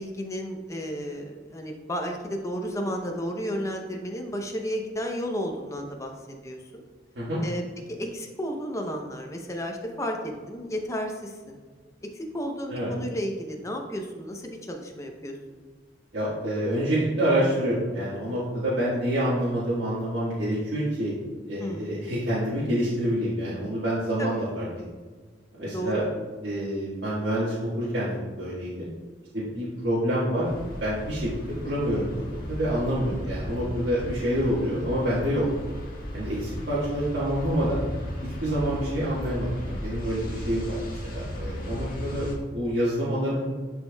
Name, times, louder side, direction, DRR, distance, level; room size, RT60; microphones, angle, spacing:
voice 1, 0.0-6.1 6.4-6.8 7.4-7.6 8.0-11.6 12.1-15.4 21.6-22.0 24.2-24.3 25.6-26.1 33.2-33.4, equal, 15° left, 2 dB, 0.7 m, -32 dB
voice 2, 16.1-21.1 21.5-24.6 25.5-26.0 26.4-28.9 29.3-30.5 30.8-35.4 36.1-37.8 38.2-42.3 42.5-43.5, equal, 75° right, -9 dB, 1.6 m, -27 dB
sound 1, 30.4-42.4, equal, 55° left, 1.5 m, -36 dB
10.0 x 4.5 x 2.3 m, 1.4 s
head